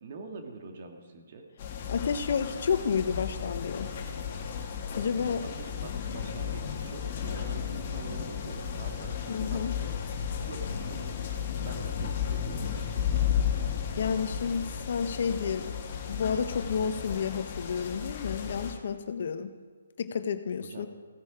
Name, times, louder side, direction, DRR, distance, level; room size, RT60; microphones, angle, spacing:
voice 1, 0.0-1.5 5.2-10.0 10.4-13.1 20.6-20.9, right 3 dB, 50° right, 3 dB, 1.9 m, -45 dB
sound 1, 1.6-18.7, left 8 dB, 40° left, 1.7 m, -34 dB
voice 2, 1.9-3.9 5.0-5.4 9.3-9.7 14.0-15.7 16.0-19.5 20.0-20.9, left 6 dB, 55° left, 9 dB, 0.9 m, -30 dB
16.0 x 9.3 x 5.0 m, 1.5 s
hypercardioid pair, 150°, 0 cm